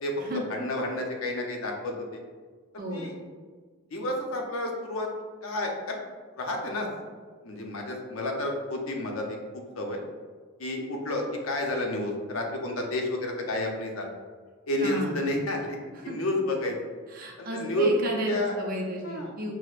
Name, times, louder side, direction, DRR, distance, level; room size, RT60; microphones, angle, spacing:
voice 1, 0.5-2.2 2.9-3.1 3.9-5.1 5.4-6.0 6.4-6.9 7.4-10.0 10.6-14.1 14.7-15.8 16.0-16.7 17.4-17.9 18.3-18.5 19.0-19.3, left 1 dB, 80° left, 1 dB, 0.6 m, -30 dB
voice 2, 2.8-3.1 14.8-15.2 16.0-16.2 17.1-19.5, equal, 45° right, 0 dB, 0.6 m, -33 dB
6.1 x 2.1 x 2.4 m, 1.5 s
head